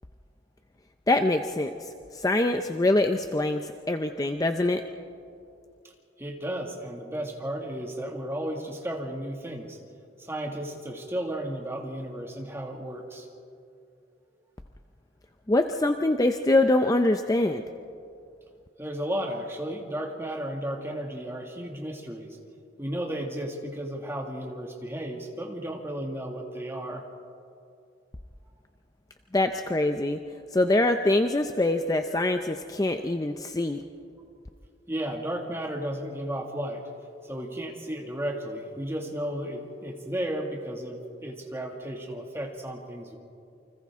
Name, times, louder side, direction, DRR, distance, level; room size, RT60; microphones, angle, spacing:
voice 1, 1.1-1.7 2.1-4.8 15.5-17.6 29.3-30.2 30.5-33.8, left 2 dB, 20° left, 6 dB, 0.5 m, -24 dB
voice 2, 6.2-9.8 10.2-13.3 18.8-22.4 22.8-27.1 34.9-36.8 37.2-43.2, right 1 dB, 15° right, 0 dB, 2.1 m, -34 dB
29.0 x 25.5 x 3.6 m, 2.5 s
head